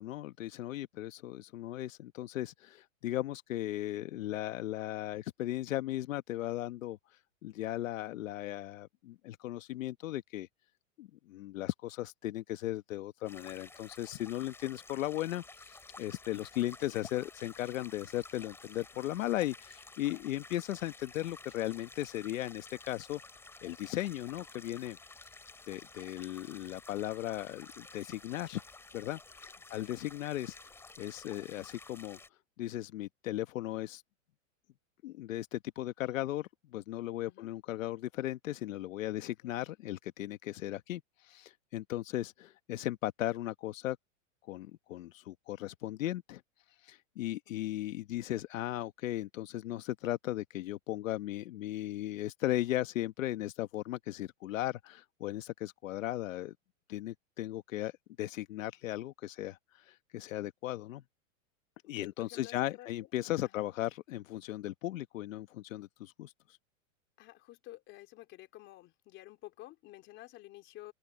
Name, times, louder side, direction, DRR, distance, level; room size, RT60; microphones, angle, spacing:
voice 1, 0.0-7.0 7.4-10.5 11.0-23.2 23.6-25.0 25.7-28.6 28.9-30.6 31.0-32.2 32.6-34.0 35.0-44.0 44.5-46.4 46.8-56.5 56.9-57.9 58.2-61.0 61.9-66.6, left 14 dB, 75° left, 1.2 m, -37 dB
sound 1, 13.3-32.3, left 3 dB, 5° left, 3.2 m, -52 dB
voice 2, 39.2-39.6 62.0-62.9 63.4-63.6 67.2-70.9, left 16 dB, 30° left, 3.5 m, -52 dB
open air
supercardioid pair, 165°, 39 cm